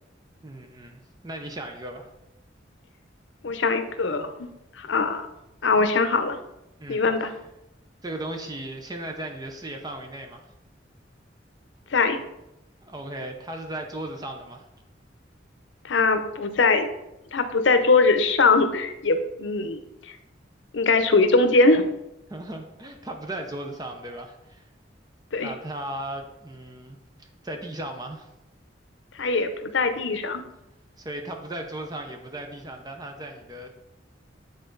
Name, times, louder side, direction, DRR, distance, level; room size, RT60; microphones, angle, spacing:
voice 1, 0.4-2.1 6.8-7.1 8.0-10.4 12.8-14.7 22.3-24.7 25.4-28.3 31.0-33.7, right 1 dB, 20° right, 4 dB, 0.6 m, -36 dB
voice 2, 3.4-4.5 4.8-5.3 5.6-6.4 6.9-7.3 11.9-12.2 15.8-16.9 17.3-19.8 20.7-21.9 25.3-25.5 29.2-30.4, left 3 dB, 90° left, 8 dB, 0.7 m, -21 dB
9.0 x 3.8 x 3.9 m, 0.89 s
head